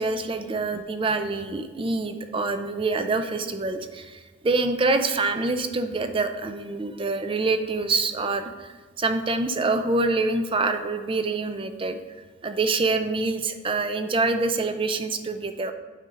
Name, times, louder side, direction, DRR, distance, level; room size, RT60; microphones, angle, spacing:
voice 1, 0.0-8.7 9.0-12.0 12.4-15.7, right 3 dB, 25° right, 8 dB, 0.5 m, -26 dB
8.6 x 5.2 x 3.7 m, 1.4 s
head